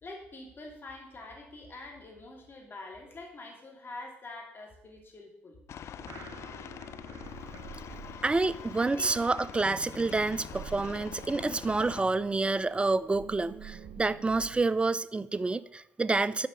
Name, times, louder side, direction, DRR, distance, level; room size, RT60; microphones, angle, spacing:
voice 1, 0.0-5.6 8.8-9.1, left 2 dB, 40° left, 1 dB, 2.6 m, -45 dB
Aircraft, 5.7-12.0, left 9 dB, 60° left, 0.4 m, -44 dB
sound 1, 6.0-14.7, right 8 dB, 60° right, 0.6 m, -48 dB
voice 2, 8.2-16.5, right 3 dB, 20° right, 18 dB, 0.4 m, -28 dB
6.7 x 5.2 x 6.6 m, 0.78 s
hypercardioid pair, 55°, 5 cm